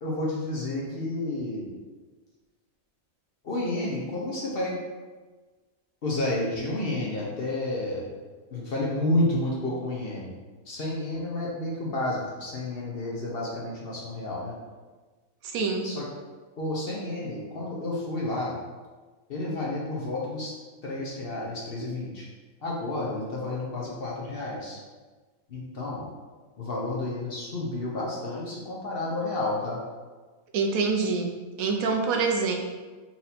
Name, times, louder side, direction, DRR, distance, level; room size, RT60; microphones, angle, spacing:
voice 1, 0.0-1.7 3.4-4.8 6.0-8.1 8.5-10.4 10.7-14.5 15.8-16.1 16.6-18.5 19.3-20.5 20.8-22.3 22.6-24.8 25.5-26.0 26.6-29.8, left 2 dB, 50° left, -4 dB, 0.9 m, -30 dB
voice 2, 15.4-15.9 30.5-32.6, right 4 dB, 80° right, 2 dB, 1.1 m, -26 dB
4.2 x 2.6 x 4.1 m, 1.3 s
omnidirectional pair, 1.4 m